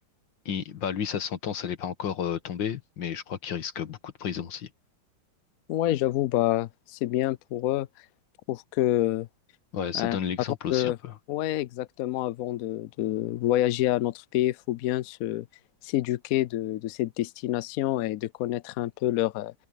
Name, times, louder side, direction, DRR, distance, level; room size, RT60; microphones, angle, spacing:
voice 1, 0.5-4.7 9.7-11.1, left 8 dB, 70° left, 2.1 m, -32 dB
voice 2, 5.7-7.9 8.5-9.3 9.9-10.2 10.7-11.0 11.3-15.4 15.8-19.5, left 15 dB, 85° left, 0.7 m, -27 dB
open air
omnidirectional pair, 2.1 m